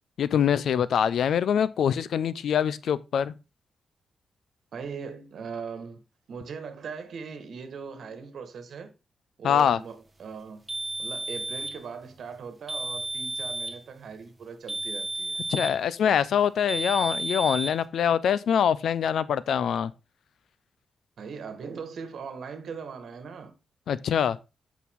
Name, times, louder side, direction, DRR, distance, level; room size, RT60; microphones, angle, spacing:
voice 1, 0.2-3.3 9.4-9.8 15.5-19.9 23.9-24.4, left 8 dB, 85° left, 0.5 m, -24 dB
voice 2, 4.7-6.0 6.3-8.9 9.4-10.6 11.0-15.4 21.2-23.5, right 5 dB, 70° right, 1.6 m, -39 dB
sound 1, 10.7-11.8 12.7-13.8 14.7-15.8 16.7-17.8, right 2 dB, 15° right, 1.5 m, -32 dB
8.5 x 6.1 x 3.6 m
wide cardioid pair, 120°, 0 cm